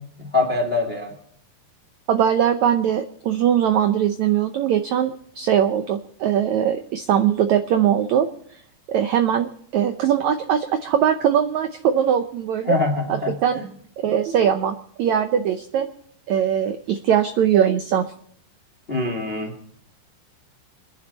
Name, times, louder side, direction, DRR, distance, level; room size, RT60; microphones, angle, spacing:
voice 1, 0.2-1.1 12.6-13.6 18.9-19.5, left 3 dB, 30° left, 3 dB, 1.1 m, -24 dB
voice 2, 2.1-8.3 8.9-12.8 13.1-13.6 14.0-15.9 16.3-18.1, right 9 dB, 85° right, 9 dB, 1.6 m, -21 dB
26.0 x 11.0 x 4.1 m, 0.64 s
omnidirectional pair, 4.4 m